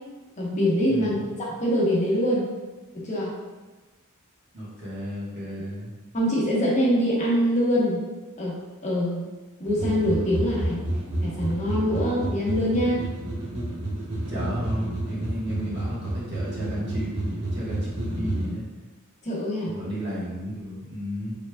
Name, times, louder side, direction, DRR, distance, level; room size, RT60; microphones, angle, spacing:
voice 1, 0.4-2.5 2.9-3.3 6.1-8.0 8.4-8.5 8.8-9.2 9.6-10.8 11.2-13.0 19.2-19.7, equal, 35° left, -5 dB, 1.0 m, -24 dB
voice 2, 0.9-1.3 4.5-5.9 14.3-17.9 18.2-18.6 19.7-21.3, equal, 50° right, -7 dB, 1.4 m, -33 dB
sound 1, 9.7-18.5, right 1 dB, 70° right, 1.1 m, -30 dB
4.7 x 3.3 x 2.2 m, 1.2 s
head